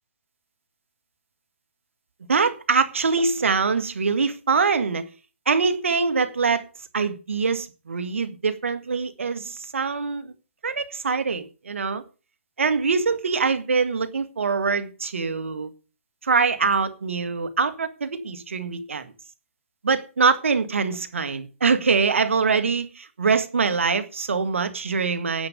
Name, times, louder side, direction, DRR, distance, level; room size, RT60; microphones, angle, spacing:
voice 1, 2.3-5.1 5.5-6.6 6.9-10.3 10.6-12.0 12.6-15.7 16.2-19.1 19.8-25.5, right 5 dB, 65° right, 1.9 m, -23 dB
10.5 x 8.1 x 6.8 m
figure-of-eight pair, 135°, 7 cm